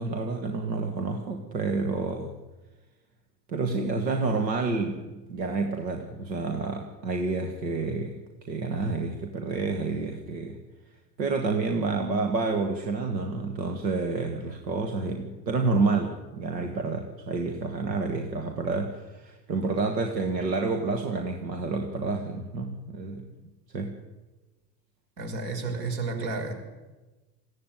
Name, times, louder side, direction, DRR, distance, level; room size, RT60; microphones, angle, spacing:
voice 1, 0.0-2.3 3.5-8.2 8.5-10.6 11.2-23.3 23.7-24.0, right 3 dB, 90° right, 4 dB, 1.9 m, -29 dB
voice 2, 25.2-26.5, right 3 dB, 65° right, 4 dB, 6.1 m, -31 dB
20.5 x 15.5 x 9.2 m, 1.2 s
hypercardioid pair, 80°, 49 cm